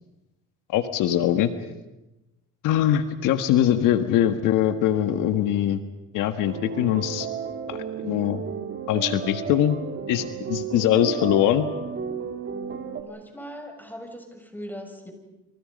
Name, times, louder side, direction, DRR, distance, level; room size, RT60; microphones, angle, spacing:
voice 1, 0.7-1.5 2.6-5.8 6.1-7.3 7.7-8.4 8.9-9.8 10.1-11.7, left 11 dB, 80° left, 9 dB, 1.6 m, -22 dB
sound 1, 6.4-13.0, right 6 dB, 40° right, 3.0 m, -33 dB
voice 2, 13.0-15.1, equal, 5° left, 4 dB, 6.2 m, -39 dB
27.5 x 27.0 x 5.3 m, 0.99 s
cardioid pair, 105°, 31 cm